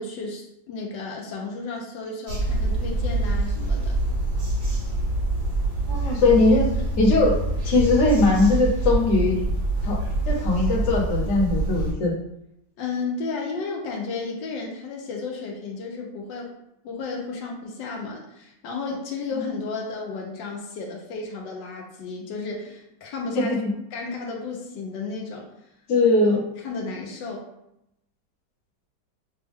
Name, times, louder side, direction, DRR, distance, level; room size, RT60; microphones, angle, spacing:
voice 1, 0.0-3.9 12.8-16.5 16.8-23.5 23.9-25.5 26.3-27.5, left 4 dB, 80° left, -1 dB, 1.4 m, -33 dB
sound 1, 2.3-11.9, right 2 dB, 60° right, 2.0 m, -25 dB
voice 2, 5.9-6.7 7.0-7.3 7.6-9.4 9.8-10.0 10.3-12.1 23.3-23.6 25.9-26.4, left 2 dB, 50° left, -2 dB, 1.2 m, -20 dB
6.1 x 2.2 x 3.4 m, 0.82 s
omnidirectional pair, 2.0 m